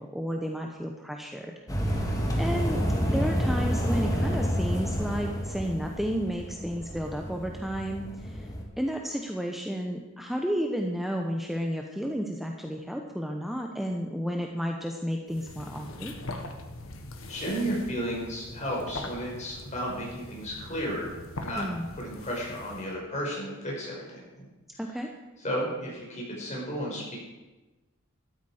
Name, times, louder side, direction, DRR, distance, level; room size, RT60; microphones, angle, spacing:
voice 1, 0.0-1.5 1.9-2.0 2.4-2.8 3.1-8.5 8.8-16.1 21.6-21.9 24.8-25.1, equal, ahead, 2 dB, 0.8 m, -32 dB
sound 1, 1.7-8.6, equal, 15° left, 2.0 m, -29 dB
voice 2, 2.0-2.4 17.3-21.6 21.9-24.5 25.4-27.0, equal, 35° left, -3 dB, 5.2 m, -33 dB
sound 2, 15.3-23.0, left 2 dB, 75° left, 1.5 m, -42 dB
13.0 x 12.5 x 4.9 m, 1.1 s
head